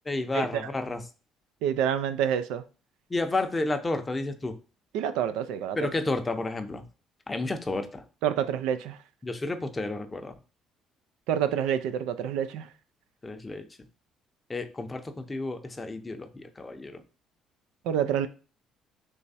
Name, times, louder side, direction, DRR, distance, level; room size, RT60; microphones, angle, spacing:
voice 1, 0.1-1.0 3.1-4.6 5.8-6.8 7.3-8.0 9.2-10.3 13.2-13.6 14.5-17.0, left 2 dB, 20° left, 0.6 m, -31 dB
voice 2, 1.6-2.6 4.9-5.8 8.2-9.0 11.3-12.7 17.9-18.3, right 9 dB, 85° right, 0.4 m, -27 dB
3.4 x 3.1 x 4.1 m
cardioid pair, 110°, 0 cm